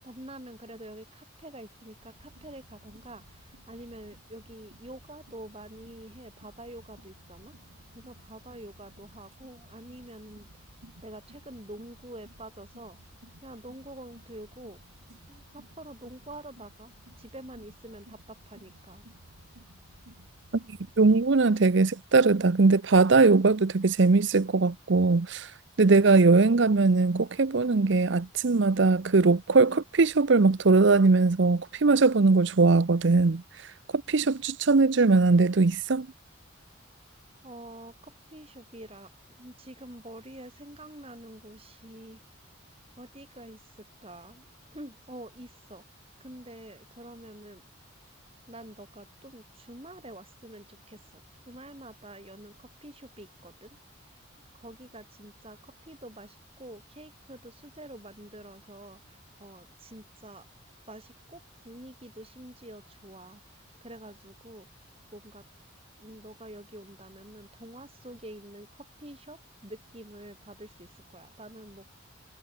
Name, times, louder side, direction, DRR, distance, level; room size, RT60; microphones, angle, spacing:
voice 1, 0.0-7.5 7.9-10.5 11.0-13.0 13.4-14.8 15.3-19.1 37.4-42.4 43.0-44.5 44.7-45.8 46.2-47.6 48.5-53.8 54.1-54.2 54.5-60.5 60.9-64.7 65.1-65.4 66.0-71.9, right 1 dB, 25° right, 5.7 m, -47 dB
sound 1, 2.0-21.4, right 1 dB, 85° right, 4.1 m, -56 dB
voice 2, 21.0-25.5 25.8-33.4 33.9-36.1, right 3 dB, 60° right, 0.6 m, -21 dB
head